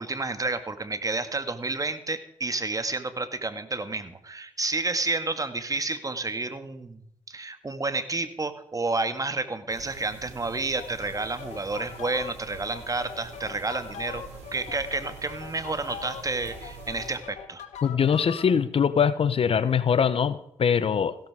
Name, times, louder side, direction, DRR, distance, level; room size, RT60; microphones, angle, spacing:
voice 1, 0.0-7.0 7.3-14.2 14.5-17.6, right 3 dB, 30° right, 10 dB, 1.9 m, -30 dB
sound 1, 9.7-17.2, right 6 dB, 85° right, 2.9 m, -46 dB
sound 2, 10.8-18.5, left 7 dB, 80° left, 1.6 m, -42 dB
voice 2, 17.8-21.2, left 7 dB, 55° left, 16 dB, 0.9 m, -23 dB
16.0 x 13.0 x 5.0 m, 0.75 s
supercardioid pair, 45°, 12 cm